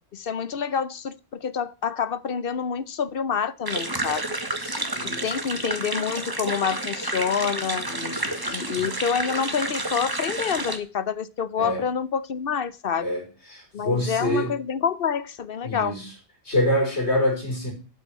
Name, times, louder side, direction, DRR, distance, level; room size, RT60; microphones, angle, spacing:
voice 1, 0.1-4.2 5.0-7.8 8.5-13.1 13.7-15.9, left 7 dB, 60° left, 0.9 m, -27 dB
sound 1, 3.7-10.8, right 1 dB, 20° right, 1.4 m, -30 dB
voice 2, 4.4-5.6 7.8-8.9 11.6-11.8 13.0-14.5 15.6-16.1 16.5-17.7, left 1 dB, 80° left, 5.6 m, -27 dB
8.6 x 7.9 x 8.2 m
omnidirectional pair, 1.1 m